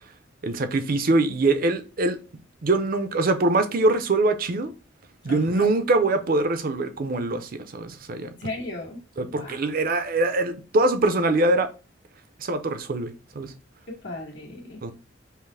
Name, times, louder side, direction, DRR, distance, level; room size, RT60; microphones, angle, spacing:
voice 1, 0.4-2.2 2.6-4.7 5.2-8.3 9.2-11.7 12.4-13.5 14.8-14.9, right 2 dB, 50° right, 0.6 m, -23 dB
voice 2, 5.3-5.7 8.4-9.0 9.4-9.7 13.9-14.8, left 2 dB, 80° left, 1.7 m, -36 dB
5.5 x 2.1 x 3.3 m
head